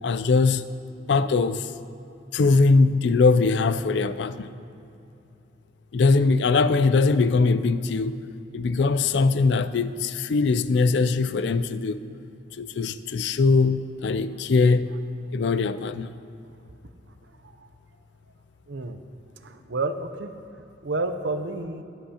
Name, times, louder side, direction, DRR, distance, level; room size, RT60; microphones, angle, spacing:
voice 1, 0.0-0.6 1.1-1.7 2.3-4.5 5.9-8.2 8.5-12.0 12.6-14.9 15.3-16.1, left 4 dB, 70° left, 13 dB, 0.4 m, -21 dB
voice 2, 18.7-19.0 19.4-21.8, right 2 dB, 75° right, 9 dB, 0.7 m, -30 dB
21.0 x 7.9 x 2.9 m, 2.8 s
head